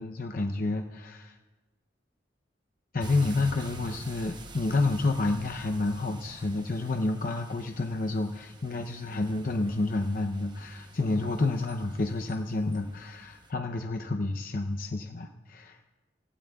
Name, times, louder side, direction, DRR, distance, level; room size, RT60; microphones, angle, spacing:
voice 1, 0.0-1.4 2.9-16.0, left 2 dB, 50° left, 4 dB, 0.7 m, -29 dB
sound 1, 3.0-13.5, right 2 dB, 25° right, 0.9 m, -47 dB
29.0 x 16.0 x 2.4 m, 1.2 s
head